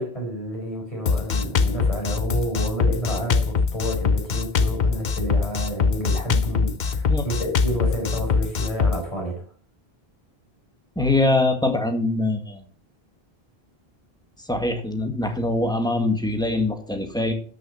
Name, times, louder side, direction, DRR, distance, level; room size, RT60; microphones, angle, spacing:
voice 1, 0.0-9.4, right 1 dB, 35° left, -1 dB, 4.7 m, -30 dB
Drum kit, 1.1-9.0, left 5 dB, 50° left, 0.8 m, -22 dB
voice 2, 11.0-12.6 14.5-17.3, left 2 dB, 5° left, 4 dB, 1.9 m, -23 dB
13.0 x 6.3 x 5.7 m, 0.42 s
omnidirectional pair, 1.0 m